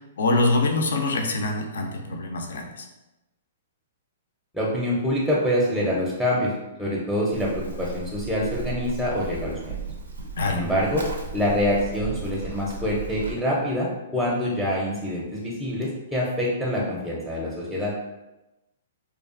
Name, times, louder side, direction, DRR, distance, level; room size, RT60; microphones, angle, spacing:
voice 1, 0.2-2.9 10.4-10.6, left 2 dB, 75° left, 3 dB, 0.4 m, -24 dB
voice 2, 4.5-6.5 6.8-9.7 10.5-11.0 11.3-17.9, equal, ahead, -5 dB, 0.5 m, -25 dB
Livestock farm animals working animals, 7.3-13.3, right 4 dB, 90° right, 0.5 m, -35 dB
2.5 x 2.4 x 2.4 m, 1.0 s
hypercardioid pair, 125°, 0 cm